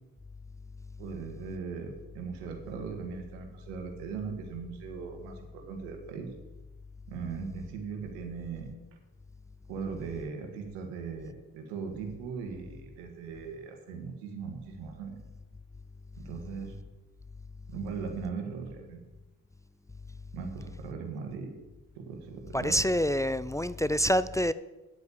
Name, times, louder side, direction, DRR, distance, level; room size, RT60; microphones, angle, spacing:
voice 1, 1.0-6.3 7.1-8.7 9.7-15.2 16.2-16.7 17.7-19.0 20.3-21.5 22.0-22.8, right 5 dB, 85° right, 1.8 m, -39 dB
voice 2, 22.5-24.5, equal, 10° left, 0.4 m, -26 dB
9.5 x 8.2 x 7.0 m
hypercardioid pair, 50°, 40 cm